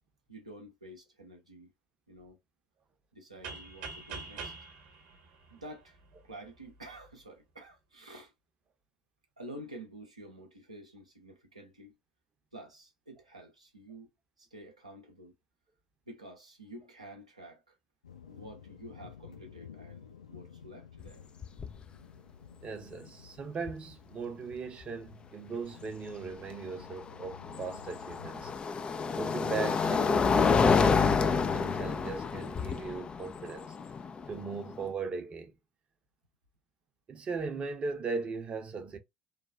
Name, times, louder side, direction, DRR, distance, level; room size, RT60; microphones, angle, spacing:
voice 1, 0.3-1.7 2.1-2.4 3.1-4.5 5.5-8.3 9.4-11.9 12.5-14.1 14.4-15.3 16.1-17.8 18.3-21.2, right 1 dB, 85° right, 0.6 m, -49 dB
sound 1, 3.4-6.2, right 4 dB, 60° right, 0.9 m, -44 dB
sound 2, 18.0-28.6, left 8 dB, 80° left, 0.6 m, -52 dB
sound 3, 21.0-21.1 21.4-21.8 23.7-23.8 26.8-34.9, left 5 dB, 30° left, 0.4 m, -28 dB
voice 2, 22.6-28.5 29.2-33.8 34.3-35.5 37.1-39.0, right 4 dB, 35° right, 0.7 m, -38 dB
3.2 x 2.3 x 2.2 m
figure-of-eight pair, 55°, 3 cm